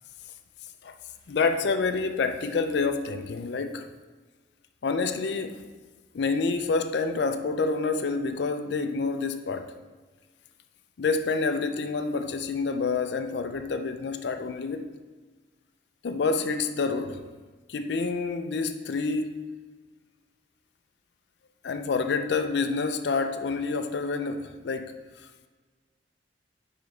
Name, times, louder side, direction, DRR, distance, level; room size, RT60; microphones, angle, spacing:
voice 1, 1.3-3.9 4.8-5.6 6.1-9.7 11.0-14.9 16.0-17.2 17.7-19.4 21.6-25.5, left 4 dB, 65° left, 0.4 m, -28 dB
9.4 x 3.9 x 3.2 m
head